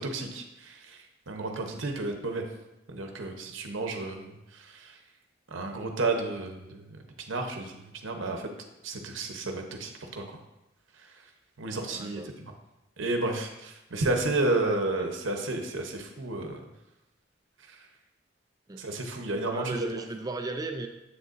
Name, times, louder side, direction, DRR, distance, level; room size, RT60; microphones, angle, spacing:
voice 1, 0.0-2.4 2.9-5.0 5.5-7.0 7.3-8.5 8.8-10.4 11.0-11.1 11.6-12.2 13.0-16.6 17.7-17.8 18.8-20.0, right 2 dB, 85° right, 4 dB, 0.8 m, -32 dB
voice 2, 11.9-12.3 14.9-15.1 18.7-18.9 19.5-20.9, right 2 dB, 20° right, 5 dB, 0.4 m, -35 dB
7.5 x 6.5 x 2.5 m, 0.92 s
head